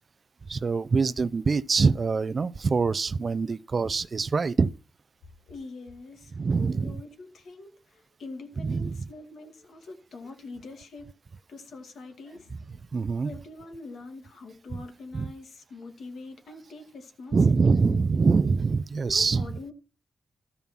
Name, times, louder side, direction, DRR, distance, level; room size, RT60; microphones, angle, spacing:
voice 1, 0.5-4.7 6.4-6.9 8.6-9.1 12.9-13.3 15.1-15.3 17.3-19.5, right 4 dB, 35° right, 0.4 m, -24 dB
voice 2, 5.5-11.1 11.5-12.6 13.2-18.1 19.0-19.7, left 3 dB, 75° left, 2.3 m, -44 dB
13.0 x 5.4 x 6.0 m
wide cardioid pair, 140°, 0 cm